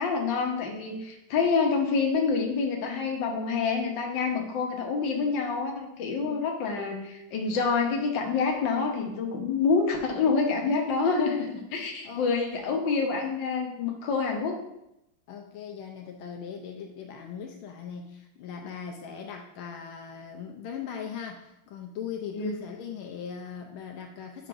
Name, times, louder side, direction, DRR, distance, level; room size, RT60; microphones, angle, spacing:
voice 1, 0.0-14.6 22.3-22.6, left 4 dB, 65° left, 1 dB, 1.6 m, -27 dB
voice 2, 6.2-6.5 11.4-12.3 13.0-13.2 15.3-24.5, left 7 dB, 85° left, 1 dB, 1.5 m, -40 dB
8.4 x 5.8 x 2.5 m, 0.85 s
omnidirectional pair, 2.3 m